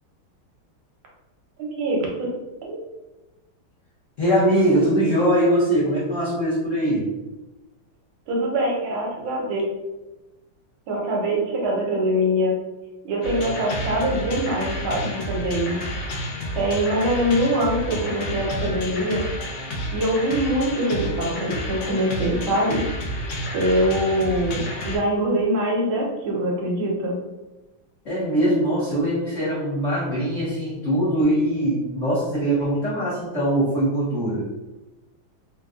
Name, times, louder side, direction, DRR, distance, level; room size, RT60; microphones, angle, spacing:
voice 1, 1.6-2.1 2.6-2.7 8.3-9.6 10.9-12.5 13.0-15.8 16.5-19.2 19.9-22.8 23.5-27.2, equal, 75° right, -2 dB, 1.6 m, -23 dB
voice 2, 4.2-7.1 28.0-34.4, right 1 dB, 55° left, -10 dB, 0.9 m, -22 dB
sound 1, 13.2-25.0, equal, 80° left, 1.5 m, -30 dB
3.9 x 2.2 x 2.3 m, 1.1 s
omnidirectional pair, 2.3 m